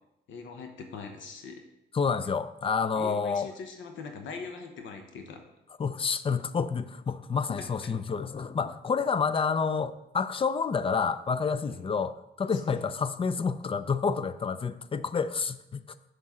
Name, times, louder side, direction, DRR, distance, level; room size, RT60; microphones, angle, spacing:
voice 1, 0.3-1.6 3.0-5.4 11.6-11.8 12.4-12.8, left 4 dB, 70° left, 4 dB, 1.0 m, -42 dB
voice 2, 1.9-3.5 5.8-15.8, left 5 dB, 30° left, 14 dB, 0.4 m, -29 dB
7.2 x 6.7 x 3.7 m, 0.87 s
cardioid pair, 90°, 20 cm